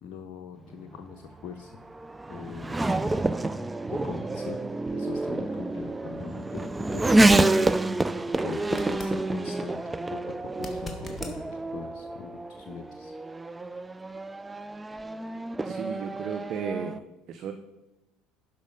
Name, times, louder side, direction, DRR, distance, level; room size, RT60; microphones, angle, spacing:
voice 1, 0.0-1.7 2.3-2.8 3.9-4.6 4.9-7.6 8.4-11.4 11.7-13.1, left 7 dB, 50° left, 4 dB, 0.7 m, -41 dB
Race car auto racing / Accelerating revving vroom, 0.7-17.0, right 2 dB, 15° right, 0.4 m, -28 dB
sound 1, 8.6-9.2 10.5-11.4 14.4-14.5, left 2 dB, 15° left, 1.8 m, -41 dB
voice 2, 15.6-17.0 17.3-17.5, right 7 dB, 50° right, 6 dB, 0.7 m, -34 dB
11.5 x 5.1 x 5.2 m, 0.99 s
hypercardioid pair, 70°, 0 cm